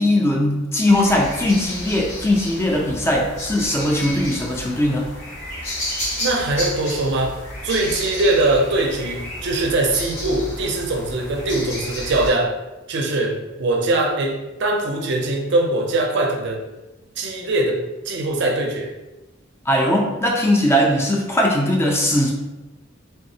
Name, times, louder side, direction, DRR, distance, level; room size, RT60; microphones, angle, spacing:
voice 1, 0.0-5.1 19.7-22.3, left 1 dB, 15° left, -1 dB, 0.4 m, -19 dB
sound 1, 0.9-12.3, equal, 80° left, 1.1 m, -32 dB
voice 2, 6.2-7.4 7.6-12.5 12.9-16.6 17.2-18.9, right 2 dB, 60° right, 2 dB, 0.5 m, -22 dB
3.4 x 2.0 x 2.6 m, 1.0 s
head